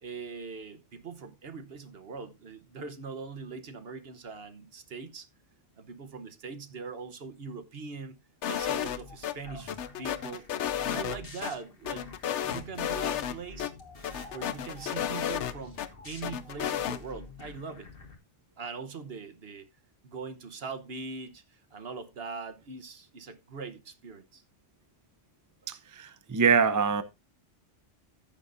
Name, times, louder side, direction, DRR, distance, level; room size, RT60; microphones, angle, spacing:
voice 1, 0.0-5.3 5.8-8.2 8.4-10.5 10.8-12.1 12.4-13.7 14.3-17.9 18.6-19.7 20.0-24.4, right 4 dB, 55° right, 1.2 m, -41 dB
sound 1, 8.4-9.3 9.7-11.5 11.9-13.3 13.6-13.7 14.0-15.9 16.2-17.0, left 10 dB, 75° left, 1.0 m, -32 dB
sound 2, 8.5-18.2, left 3 dB, 50° left, 1.9 m, -47 dB
voice 2, 25.7-27.0, right 6 dB, 20° right, 0.5 m, -25 dB
14.5 x 6.8 x 2.6 m
omnidirectional pair, 1.2 m